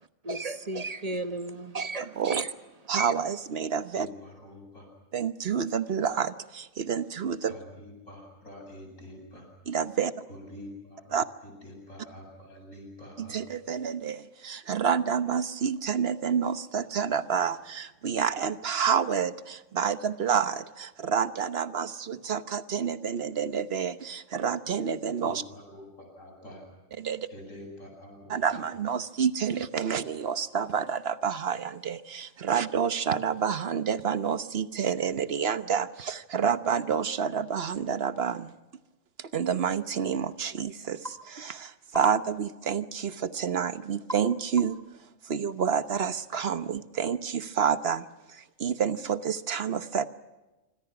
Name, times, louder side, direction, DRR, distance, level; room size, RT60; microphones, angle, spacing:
voice 1, 0.2-2.5 2.9-3.1, right 2 dB, 30° right, 1.3 m, -34 dB
voice 2, 2.0-2.4 2.9-4.1 5.1-7.5 9.7-10.1 11.1-11.3 13.2-25.4 27.0-27.3 28.3-38.5 39.2-44.8 45.2-50.1, right 7 dB, 50° right, 1.2 m, -29 dB
voice 3, 3.9-4.9 7.5-9.5 10.3-11.2 11.4-13.4 25.2-26.6 27.3-28.6, left 1 dB, 80° left, 8.5 m, -46 dB
sound 1, 41.0-41.2 41.9-42.2 44.1-44.3 44.6-44.9, equal, ahead, 3.9 m, -39 dB
26.0 x 25.5 x 6.0 m
omnidirectional pair, 1.4 m